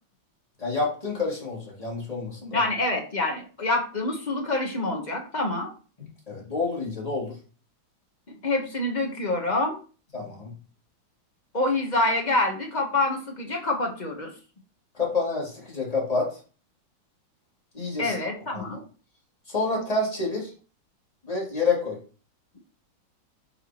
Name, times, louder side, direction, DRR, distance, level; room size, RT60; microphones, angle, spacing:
voice 1, 0.6-2.6 6.0-7.4 10.1-10.5 14.9-16.3 17.7-18.2 18.5-18.8 19.5-20.5 21.2-22.0, left 3 dB, 20° left, -4 dB, 2.3 m, -28 dB
voice 2, 2.5-5.7 8.4-9.8 11.5-14.3 18.0-18.8, left 2 dB, 35° left, 1 dB, 0.7 m, -26 dB
8.2 x 4.8 x 2.9 m, 0.37 s
omnidirectional pair, 2.3 m